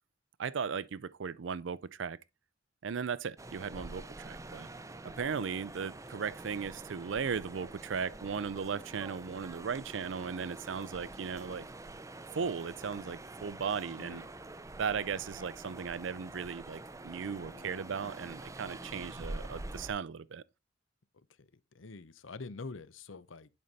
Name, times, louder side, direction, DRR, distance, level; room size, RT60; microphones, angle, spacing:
voice 1, 0.4-2.2 2.8-4.7 5.0-11.7 12.3-14.2 14.8-20.4, right 6 dB, 65° right, 0.5 m, -37 dB
sound 1, 3.4-19.9, right 2 dB, 15° right, 0.5 m, -46 dB
voice 2, 13.8-14.3 17.3-17.9 18.8-18.9 21.1-23.5, left 3 dB, 75° left, 0.8 m, -47 dB
11.0 x 5.3 x 4.1 m
head